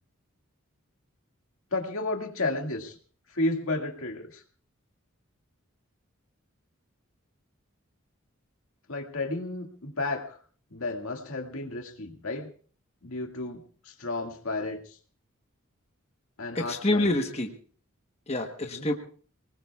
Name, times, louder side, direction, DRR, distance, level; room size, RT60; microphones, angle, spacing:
voice 1, 1.7-3.0 3.3-4.4 8.9-10.4 10.7-12.5 13.0-15.0 16.4-17.2 18.6-18.9, left 2 dB, 75° left, 3 dB, 2.0 m, -32 dB
voice 2, 16.5-17.5 18.3-18.9, left 1 dB, 30° left, 4 dB, 1.1 m, -27 dB
28.5 x 19.5 x 2.4 m, 0.43 s
head